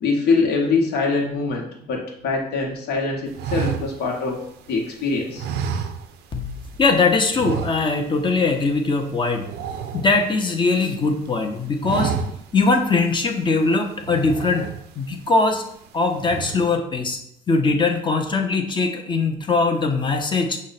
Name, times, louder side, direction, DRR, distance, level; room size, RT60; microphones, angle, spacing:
voice 1, 0.0-4.4 4.7-5.4, left 4 dB, 75° left, 0 dB, 0.9 m, -23 dB
sound 1, 3.3-4.8 5.4-6.5 6.7-6.9 7.3-8.2 8.5-8.7 9.0-10.7 11.1-11.4 11.7-12.7 13.1-13.2 14.0-15.1 15.5-15.9 16.1-16.8, right 6 dB, 75° right, 0.5 m, -30 dB
voice 2, 6.3-9.5 9.9-12.1 12.5-14.7 15.0-15.6 15.9-17.2 17.5-20.6, left 3 dB, 30° left, 4 dB, 0.6 m, -21 dB
6.1 x 2.1 x 4.0 m, 0.72 s
cardioid pair, 110°, 17 cm